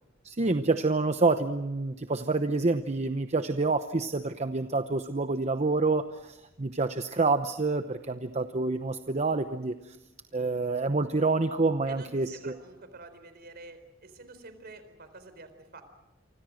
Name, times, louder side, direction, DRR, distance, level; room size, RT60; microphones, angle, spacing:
voice 1, 0.2-10.0 10.3-12.5, right 3 dB, 35° right, 9 dB, 0.9 m, -27 dB
voice 2, 11.9-15.8, right 3 dB, 55° right, 10 dB, 4.1 m, -48 dB
28.0 x 25.0 x 6.4 m, 0.99 s
head